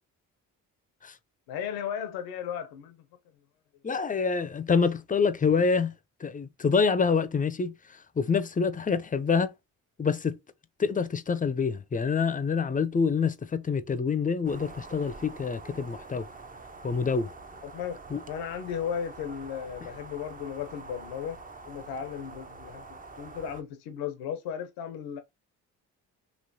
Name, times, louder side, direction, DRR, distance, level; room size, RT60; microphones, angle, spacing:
voice 1, 1.5-3.1 17.6-18.0 18.3-21.4 21.7-25.2, left 8 dB, 90° left, 0.7 m, -35 dB
voice 2, 3.8-5.9 6.2-9.5 10.0-10.4 10.8-16.3 16.8-17.3 18.1-18.2, left 5 dB, 25° left, 0.5 m, -26 dB
sound 1, 14.4-23.6, right 3 dB, 25° right, 0.6 m, -46 dB
3.1 x 2.9 x 2.6 m
supercardioid pair, 55°, 36 cm